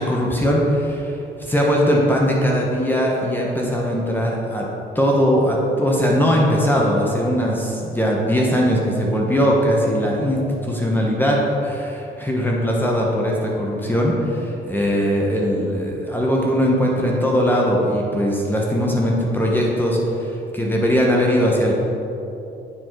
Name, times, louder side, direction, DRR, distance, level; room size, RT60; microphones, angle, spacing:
voice 1, 0.0-4.7 4.9-21.7, equal, 10° left, -3 dB, 1.1 m, -20 dB
9.3 x 4.3 x 4.6 m, 2.9 s
cardioid pair, 90°, 20 cm